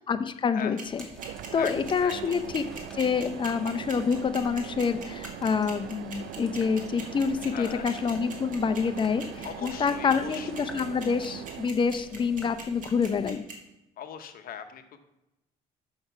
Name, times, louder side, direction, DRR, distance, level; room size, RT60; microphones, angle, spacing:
voice 1, 0.1-1.0 1.5-2.6 2.9-13.4, left 6 dB, 30° left, 9 dB, 0.6 m, -27 dB
sound 1, 0.8-13.3, left 1 dB, 5° left, 1.2 m, -49 dB
sound 2, 0.8-13.5, right 5 dB, 50° right, 1.7 m, -41 dB
sound 3, 1.2-11.7, right 12 dB, 90° right, 0.4 m, -41 dB
voice 2, 1.5-2.4 7.5-7.9 9.4-10.7 14.0-15.0, left 9 dB, 60° left, 8 dB, 0.9 m, -40 dB
6.6 x 5.8 x 5.6 m, 0.91 s
cardioid pair, 110°, 17 cm